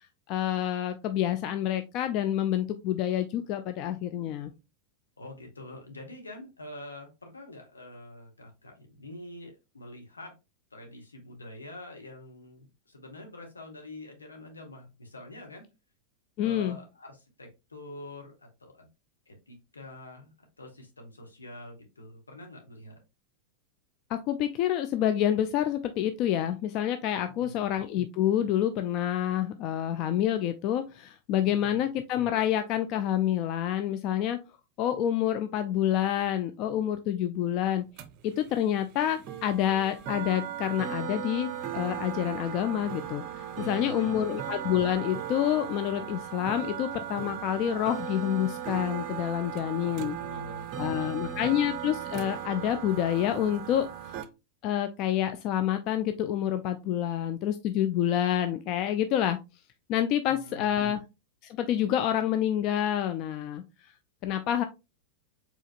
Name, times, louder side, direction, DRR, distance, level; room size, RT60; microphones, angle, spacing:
voice 1, 0.3-4.5 16.4-16.8 24.1-34.4 34.8-37.8 38.2-43.2 43.6-50.2 50.8-54.2 54.6-59.4 59.9-61.0 61.4-63.6 64.2-64.6, left 11 dB, 40° left, 8 dB, 0.4 m, -28 dB
voice 2, 5.2-10.3 10.7-15.7 16.4-18.9 19.3-20.3 20.6-23.0 27.4-27.6 31.4-31.9 43.5-44.4 49.8-51.4 60.3-61.0, left 1 dB, 75° left, 2 dB, 1.3 m, -45 dB
sound 1, 38.0-54.3, right 10 dB, 40° right, 0.6 m, -37 dB
4.9 x 3.8 x 2.4 m, 0.26 s
figure-of-eight pair, 90°, 0 cm